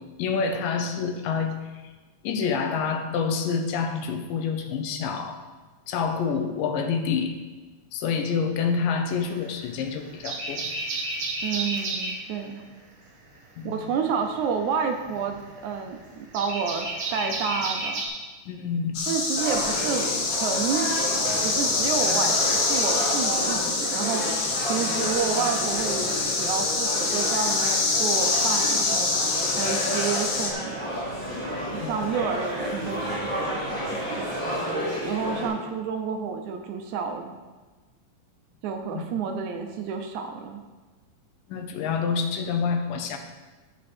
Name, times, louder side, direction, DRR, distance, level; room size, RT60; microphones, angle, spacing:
voice 1, 0.2-1.6 2.2-5.4 5.9-7.4 7.9-10.7 13.6-13.8 18.5-19.0 31.8-32.1 35.3-35.5 38.9-39.1 41.5-43.2, left 5 dB, 85° left, 6 dB, 2.6 m, -27 dB
sound 1, 9.1-9.7 10.1-12.2 13.9-18.1, right 2 dB, 45° right, 2.2 m, -31 dB
voice 2, 11.4-12.6 13.6-18.0 19.1-20.1 20.4-20.9 21.4-26.1 26.4-30.9 31.7-34.3 35.0-37.4 38.6-40.6, right 6 dB, 75° right, 5 dB, 2.0 m, -30 dB
sound 2, 18.9-30.5, left 3 dB, 70° left, 2.6 m, -25 dB
sound 3, 19.4-35.5, equal, 5° left, 2.6 m, -31 dB
14.5 x 5.2 x 4.3 m, 1.3 s
omnidirectional pair, 3.8 m